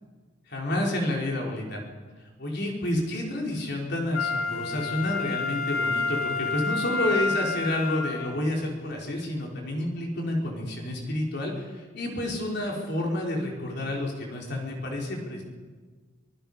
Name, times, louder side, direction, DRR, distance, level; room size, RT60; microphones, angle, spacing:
voice 1, 0.5-1.8 2.4-15.4, left 1 dB, 55° left, -1 dB, 4.5 m, -29 dB
Wind instrument woodwind instrument, 4.1-8.4 8.9-9.0, left 4 dB, 85° left, 2.1 m, -29 dB
24.5 x 19.5 x 5.7 m, 1.4 s
head